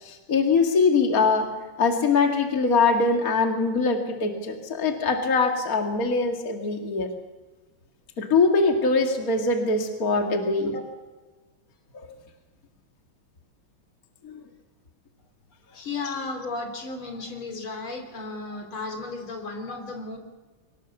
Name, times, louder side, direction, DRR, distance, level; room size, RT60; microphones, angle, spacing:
voice 1, 0.0-1.5 1.8-7.1 8.2-10.8 14.2-14.3, left 4 dB, 45° left, 3 dB, 2.4 m, -22 dB
voice 2, 15.7-20.2, left 3 dB, 75° left, 5 dB, 4.0 m, -34 dB
23.5 x 20.0 x 7.1 m, 1.3 s
omnidirectional pair, 2.3 m